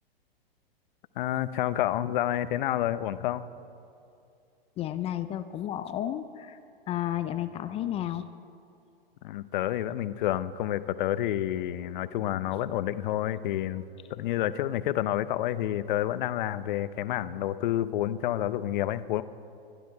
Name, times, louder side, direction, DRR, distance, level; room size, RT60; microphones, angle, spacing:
voice 1, 1.2-3.5 9.2-13.8 14.1-19.2, left 13 dB, 55° left, 15 dB, 0.7 m, -29 dB
voice 2, 4.8-6.6 6.9-8.3, left 12 dB, 20° left, 11 dB, 0.5 m, -32 dB
22.0 x 12.0 x 4.7 m, 2.7 s
hypercardioid pair, 120°, 30 cm